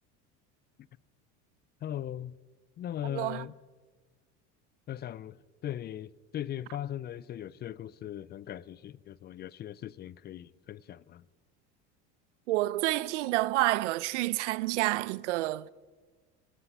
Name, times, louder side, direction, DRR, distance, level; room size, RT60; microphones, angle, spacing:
voice 1, 1.8-2.4 2.8-3.5 4.9-5.4 5.6-11.3, left 11 dB, 30° left, 0.4 m, -39 dB
voice 2, 3.0-3.5 12.5-15.7, right 18 dB, 90° right, 0.6 m, -29 dB
23.5 x 10.0 x 5.5 m
supercardioid pair, 105°, 35 cm